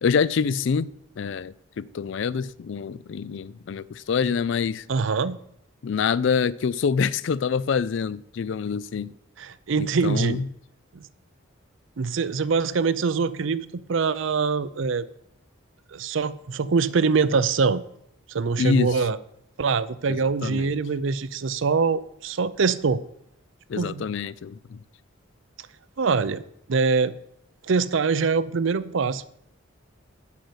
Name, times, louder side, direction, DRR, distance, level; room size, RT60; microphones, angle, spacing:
voice 1, 0.0-4.8 5.8-9.1 9.8-10.5 18.6-19.0 20.1-20.8 23.7-24.8, left 6 dB, 60° left, 0.4 m, -26 dB
voice 2, 4.9-5.4 9.4-10.4 10.9-11.0 12.0-15.1 15.9-17.8 18.3-19.2 19.6-23.0 23.8-24.0 26.0-26.4 26.7-27.1 27.6-29.3, right 5 dB, 65° right, 0.5 m, -24 dB
8.5 x 6.6 x 8.0 m
head